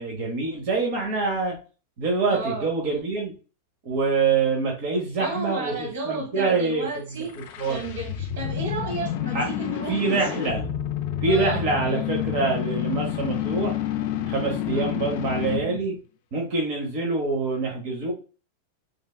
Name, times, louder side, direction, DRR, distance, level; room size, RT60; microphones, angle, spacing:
voice 1, 0.0-1.6 2.0-3.3 3.8-6.9 7.6-7.8 9.3-9.5 9.9-10.6 11.2-13.8 14.3-15.9 16.3-18.1, right 4 dB, 55° right, 1.0 m, -25 dB
voice 2, 2.3-2.7 5.2-7.4 7.7-10.5 11.3-11.6 14.7-14.9, right 2 dB, 80° right, 1.4 m, -33 dB
sound 1, 7.2-15.8, left 11 dB, 60° left, 0.5 m, -29 dB
3.2 x 2.4 x 2.3 m
hypercardioid pair, 115°, 0 cm